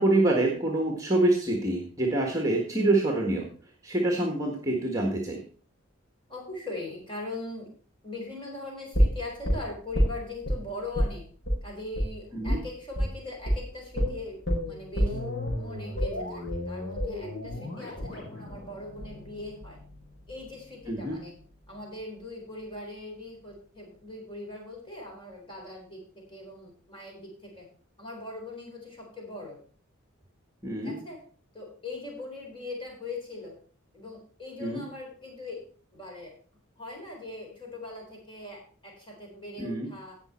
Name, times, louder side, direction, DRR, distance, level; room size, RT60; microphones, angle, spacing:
voice 1, 0.0-3.5 3.8-5.4 12.3-12.6 20.9-21.2 30.6-31.0 34.6-34.8 39.6-39.9, right 2 dB, 15° right, 1 dB, 1.5 m, -26 dB
voice 2, 6.3-7.7 8.0-11.2 11.6-14.4 14.7-15.2 15.6-19.8 20.3-21.3 21.7-27.7 28.0-29.6 30.8-31.2 31.5-33.6 33.9-35.6 35.9-36.3 36.8-40.1, left 2 dB, 25° left, -1 dB, 4.0 m, -40 dB
sound 1, 8.9-10.6 10.9-11.1 11.4-11.6 11.9-12.1 12.5-12.6 13.0-13.1 13.5-13.6 14.0-19.9 20.2-20.3, equal, 50° left, 4.5 m, -29 dB
17.0 x 6.0 x 4.3 m, 0.43 s
head